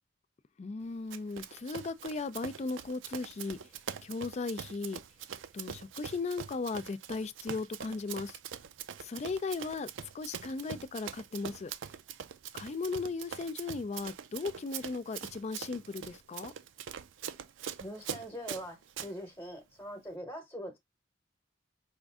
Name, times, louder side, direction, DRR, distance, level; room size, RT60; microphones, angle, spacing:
voice 1, 0.6-3.6 4.0-5.0 5.5-8.4 9.0-9.9 10.1-11.7 12.5-16.5, left 3 dB, 35° left, 0.4 m, -37 dB
Run, 1.1-19.1, right 8 dB, 80° right, 0.4 m, -43 dB
voice 2, 17.8-20.8, equal, 15° left, 1.0 m, -42 dB
5.1 x 2.5 x 3.5 m
head